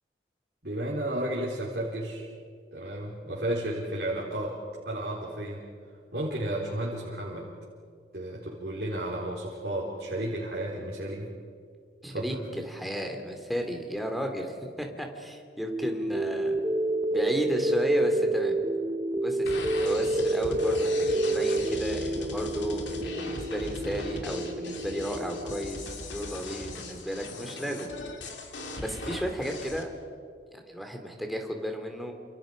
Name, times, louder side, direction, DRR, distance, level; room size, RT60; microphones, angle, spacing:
voice 1, 0.6-2.3 2.7-4.5 4.9-5.6 6.1-7.5 8.1-11.3 12.1-12.4, right 1 dB, 60° right, -5 dB, 4.0 m, -32 dB
voice 2, 12.0-16.6 17.1-18.6 19.2-27.9 28.8-29.9 30.5-32.1, equal, ahead, 3 dB, 2.7 m, -33 dB
sound 1, 15.6-25.6, right 1 dB, 20° right, 0.9 m, -29 dB
sound 2, 19.5-29.8, left 2 dB, 90° left, 2.8 m, -39 dB
29.0 x 28.0 x 5.1 m, 2.1 s
head